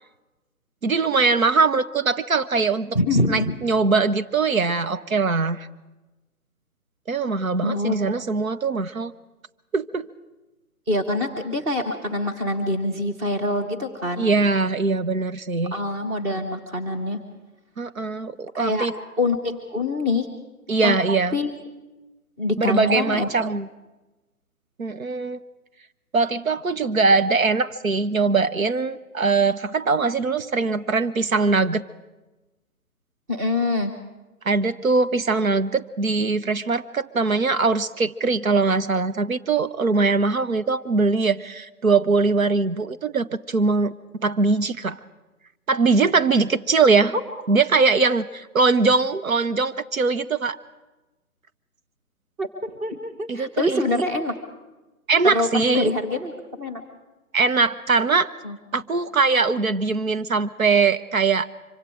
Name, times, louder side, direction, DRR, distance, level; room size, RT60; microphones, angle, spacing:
voice 1, 0.8-3.0 3.3-5.7 7.1-9.1 9.7-10.1 14.2-15.7 17.8-18.9 20.7-21.4 22.6-23.7 24.8-25.4 26.1-31.8 34.4-43.9 44.2-45.0 45.7-47.2 47.5-50.6 53.3-54.0 55.1-55.9 57.3-58.3 58.7-61.5, right 4 dB, 65° right, 12 dB, 0.9 m, -21 dB
voice 2, 2.9-3.5 7.6-8.0 10.9-14.3 15.7-17.2 18.5-18.9 19.2-20.3 20.8-20.9 21.3-21.5 22.4-23.3 33.3-33.9 52.4-54.3 55.2-56.8 58.4-58.6, left 2 dB, 10° right, 4 dB, 0.9 m, -25 dB
25.0 x 24.5 x 4.9 m, 1.1 s
figure-of-eight pair, 140°, 45 cm